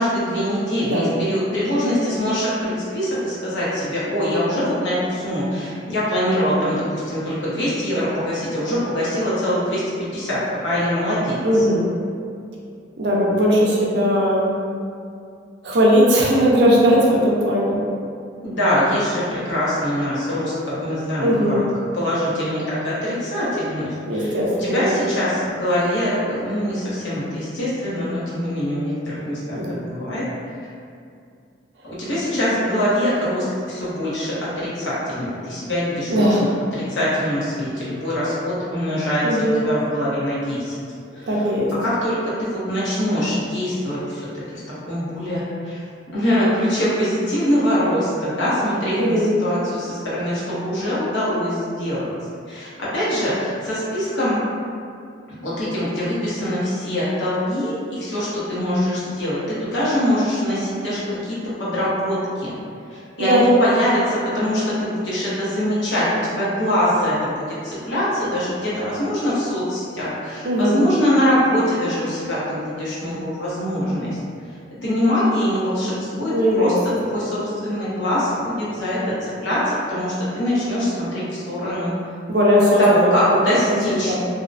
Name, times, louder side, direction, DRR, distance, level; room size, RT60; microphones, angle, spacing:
voice 1, 0.0-5.0 5.2-10.4 10.6-11.4 18.4-21.6 22.0-23.9 24.6-29.6 29.9-30.2 31.8-34.3 34.9-36.2 37.0-40.6 42.0-44.0 44.9-45.4 46.1-49.2 49.4-49.9 50.1-52.0 52.5-54.4 55.4-57.8 58.0-61.0 61.3-62.5 63.2-64.0 64.3-67.3 67.6-74.1 74.8-76.3 76.6-76.7 77.1-79.0 79.4-79.6 79.9-81.9 82.8-84.1, equal, 75° left, -9 dB, 0.8 m, -23 dB
voice 2, 11.4-11.9 13.0-14.5 15.6-17.8 21.2-21.6 24.1-25.0 29.5-29.8 36.1-36.6 39.2-39.7 41.3-41.7 49.0-49.3 63.2-63.5 70.4-70.9 76.3-77.2 82.3-84.3, equal, 60° right, -4 dB, 0.5 m, -18 dB
2.7 x 2.1 x 2.5 m, 2.3 s
head